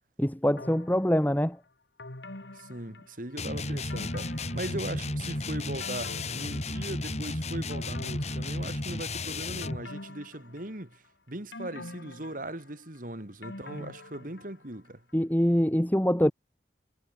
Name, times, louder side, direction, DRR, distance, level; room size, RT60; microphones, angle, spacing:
voice 1, 0.2-1.6 15.1-16.3, equal, 10° left, 1.4 m, -24 dB
sound 1, 0.6-1.4 2.0-3.4 3.9-5.2 5.6-7.2 7.7-9.0 9.6-11.1 11.5-14.8 15.1-15.2, left 2 dB, 80° left, 2.8 m, -45 dB
voice 2, 2.5-11.0 11.3-15.0, right 1 dB, 50° right, 2.9 m, -39 dB
sound 2, 3.4-9.8, left 2 dB, 40° left, 4.0 m, -33 dB
head